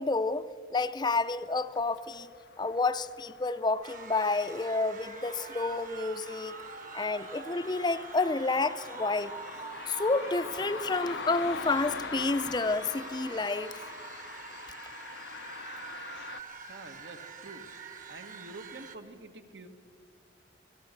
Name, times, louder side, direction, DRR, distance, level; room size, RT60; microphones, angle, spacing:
voice 1, 0.0-2.3 2.6-6.6 6.9-9.3 9.9-13.8, left 3 dB, 25° left, 0.5 m, -30 dB
sound 1, 1.7-16.4, left 6 dB, 85° left, 0.7 m, -44 dB
sound 2, 3.8-19.0, right 5 dB, 50° right, 1.5 m, -45 dB
voice 2, 16.7-17.6 18.1-19.7, right 2 dB, 75° right, 1.7 m, -47 dB
28.0 x 18.0 x 6.7 m
head